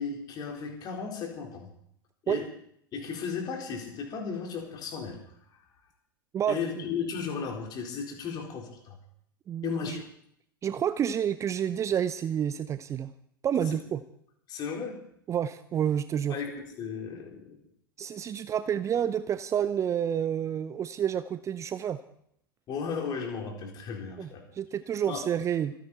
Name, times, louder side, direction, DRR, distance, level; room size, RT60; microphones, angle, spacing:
voice 1, 0.0-1.7 2.2-2.5 2.9-5.2 5.5-5.6 6.5-9.0 9.6-10.0 13.7-13.8 14.5-14.9 16.3-17.6 22.7-24.4 25.1-25.3, left 6 dB, 35° left, 1 dB, 4.4 m, -35 dB
voice 2, 6.3-6.8 9.5-10.0 10.6-13.1 13.4-14.0 15.3-16.4 18.0-22.0 24.2-25.7, right 9 dB, 25° right, 14 dB, 0.6 m, -29 dB
26.0 x 10.0 x 4.4 m, 0.70 s
figure-of-eight pair, 85°, 12 cm